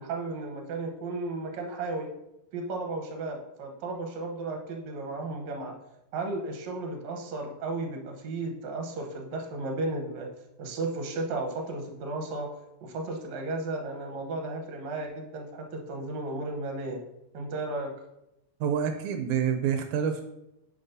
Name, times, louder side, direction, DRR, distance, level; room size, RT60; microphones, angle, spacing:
voice 1, 0.0-2.1 2.5-5.7 6.1-10.3 10.6-12.5 12.8-17.0 17.3-17.9, right 2 dB, 70° right, 2 dB, 2.3 m, -34 dB
voice 2, 18.6-20.2, right 8 dB, 90° right, 6 dB, 2.1 m, -27 dB
9.3 x 6.0 x 2.7 m, 0.88 s
omnidirectional pair, 3.4 m